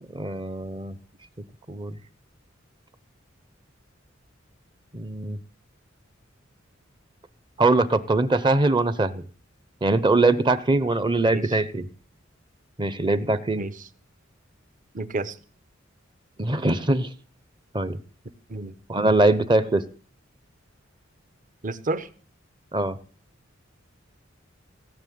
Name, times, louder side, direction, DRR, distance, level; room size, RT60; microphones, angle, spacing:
voice 1, 0.1-0.9 1.7-1.9 4.9-5.4 7.6-9.2 9.8-11.9 12.8-13.7 16.4-17.1 17.7-18.0 18.9-19.8 22.7-23.0, right 2 dB, 25° right, 14 dB, 0.8 m, -22 dB
voice 2, 14.9-15.3 18.5-18.7 21.6-22.1, right 2 dB, 40° right, 14 dB, 1.0 m, -30 dB
17.5 x 7.2 x 9.3 m, 0.41 s
head